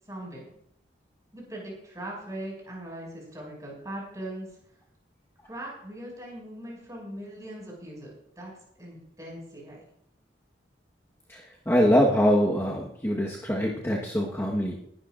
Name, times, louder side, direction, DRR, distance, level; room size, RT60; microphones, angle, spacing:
voice 1, 0.1-0.5 1.3-4.5 5.4-9.8, right 1 dB, 20° right, -3 dB, 6.1 m, -40 dB
voice 2, 11.7-14.7, equal, 15° left, -3 dB, 1.3 m, -23 dB
20.5 x 12.0 x 2.5 m, 0.71 s
head